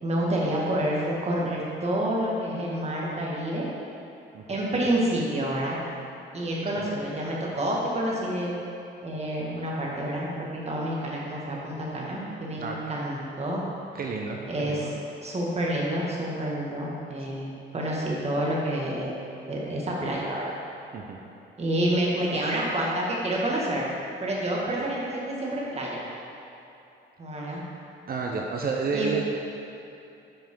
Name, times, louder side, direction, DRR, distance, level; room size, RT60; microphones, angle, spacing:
voice 1, 0.0-3.7 4.5-5.8 6.3-8.5 9.0-13.6 14.5-14.9 15.2-19.1 19.5-20.5 21.6-23.9 24.2-26.0 27.2-27.6 28.9-29.1, right 1 dB, 30° right, -4 dB, 1.9 m, -28 dB
voice 2, 13.9-14.9 20.9-21.2 28.1-29.2, right 4 dB, 50° right, 0 dB, 0.8 m, -30 dB
8.8 x 5.9 x 3.8 m, 2.9 s
cardioid pair, 90°, 20 cm